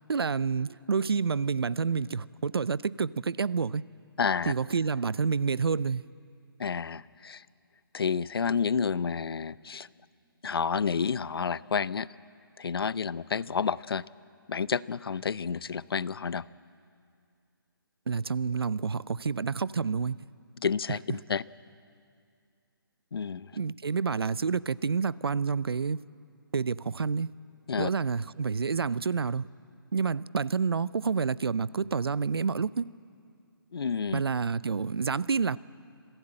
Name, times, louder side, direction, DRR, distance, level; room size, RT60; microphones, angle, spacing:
voice 1, 0.1-3.8 4.5-6.0 18.1-20.2 20.9-21.0 23.5-26.0 26.5-27.3 27.8-29.4 29.9-32.9 34.1-35.6, right 5 dB, 90° right, 21 dB, 0.5 m, -28 dB
voice 2, 4.2-4.5 6.6-7.4 7.9-9.9 10.4-12.1 12.6-14.0 14.5-16.4 20.6-21.0 21.3-21.4 23.1-23.5 27.7-27.9 33.7-34.2, left 6 dB, 75° left, 20 dB, 0.6 m, -30 dB
26.5 x 16.0 x 8.8 m, 2.4 s
hypercardioid pair, 155°, 12 cm